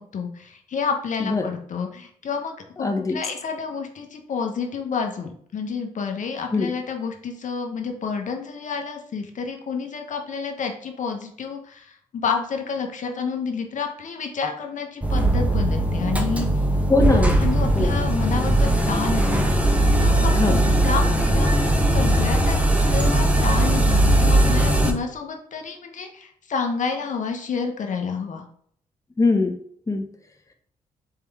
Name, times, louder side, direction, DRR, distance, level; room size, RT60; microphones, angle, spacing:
voice 1, 0.0-16.5 17.4-28.4, left 5 dB, 60° left, 4 dB, 0.8 m, -29 dB
voice 2, 2.8-3.2 6.5-6.7 16.9-17.4 17.7-17.9 20.3-20.6 29.2-29.6 29.9-30.0, left 3 dB, 20° left, 4 dB, 0.8 m, -21 dB
elevator strange grinding, 15.0-24.9, right 1 dB, 10° right, 0.9 m, -19 dB
4.4 x 3.4 x 3.4 m, 0.62 s
supercardioid pair, 55°, 15 cm